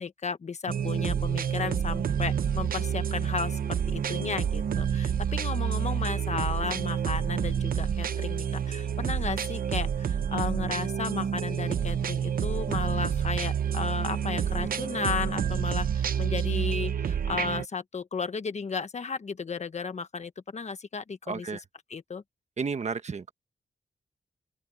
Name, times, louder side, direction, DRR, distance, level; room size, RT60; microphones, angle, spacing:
voice 1, 0.0-21.5 21.9-22.2, left 5 dB, 50° left, 1.2 m, -34 dB
sound 1, 0.7-17.6, right 8 dB, 90° right, 0.8 m, -28 dB
voice 2, 21.3-21.6 22.6-23.3, right 5 dB, 50° right, 1.3 m, -32 dB
open air
wide cardioid pair, 130°, 14 cm